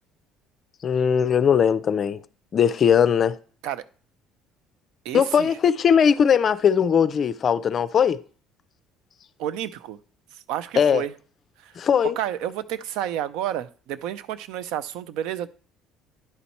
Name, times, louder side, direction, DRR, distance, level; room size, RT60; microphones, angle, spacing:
voice 1, 0.8-2.2 2.5-3.3 5.1-8.2 10.8-11.0 11.8-12.2, left 7 dB, 35° left, 0.4 m, -19 dB
voice 2, 5.0-5.5 9.4-10.0 10.5-11.1 11.6-11.7 12.2-15.5, right 11 dB, 75° right, 0.4 m, -30 dB
10.0 x 4.5 x 4.1 m
cardioid pair, 155°, 0 cm